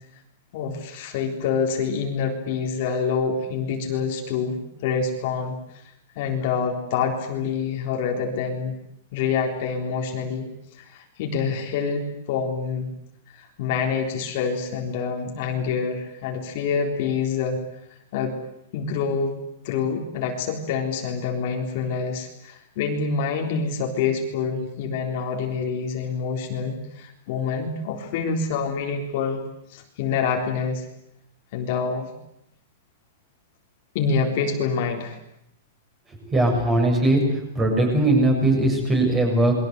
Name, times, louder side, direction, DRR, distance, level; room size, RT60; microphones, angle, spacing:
voice 1, 0.5-5.8 6.2-8.7 9.1-10.5 10.8-12.9 13.3-17.6 18.1-18.4 18.7-19.3 19.6-29.4 29.7-30.9 31.5-32.1 33.9-35.2, left 5 dB, 40° left, 2 dB, 3.8 m, -26 dB
voice 2, 36.3-37.2 37.6-39.5, right 1 dB, 10° right, 3 dB, 7.4 m, -19 dB
29.5 x 22.5 x 8.1 m, 0.79 s
supercardioid pair, 175°, 0 cm